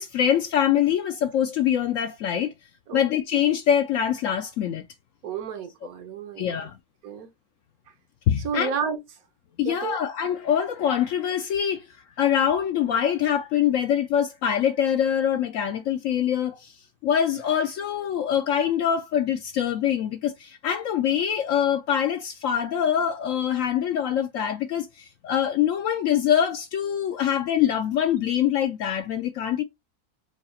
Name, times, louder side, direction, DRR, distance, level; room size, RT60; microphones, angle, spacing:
voice 1, 0.0-2.5 2.9-4.8 6.4-6.8 8.3-8.8 9.6-11.9 12.2-16.8 17.0-29.6, left 9 dB, 70° left, 0.8 m, -24 dB
voice 2, 5.2-6.6 7.0-7.3 8.4-9.0 9.6-10.0, right 6 dB, 65° right, 1.4 m, -31 dB
4.8 x 2.4 x 4.1 m
omnidirectional pair, 1.7 m